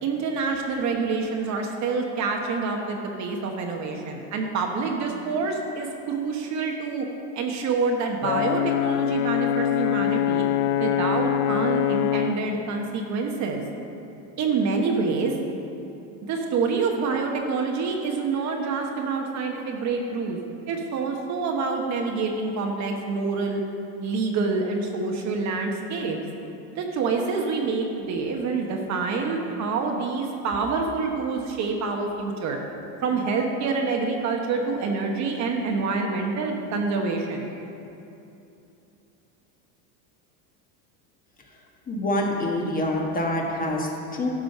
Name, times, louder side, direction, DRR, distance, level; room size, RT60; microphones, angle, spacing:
voice 1, 0.0-7.0 7.3-10.4 10.8-13.6 14.4-15.3 16.2-20.4 20.7-23.6 24.0-26.2 26.7-32.6 33.0-37.5, right 4 dB, 40° right, 2 dB, 1.1 m, -27 dB
Brass instrument, 8.2-12.5, left 11 dB, 75° left, 0.5 m, -24 dB
voice 2, 41.9-44.3, left 1 dB, 20° left, -1 dB, 1.3 m, -26 dB
12.0 x 5.0 x 6.6 m, 2.8 s
supercardioid pair, 125°, 44 cm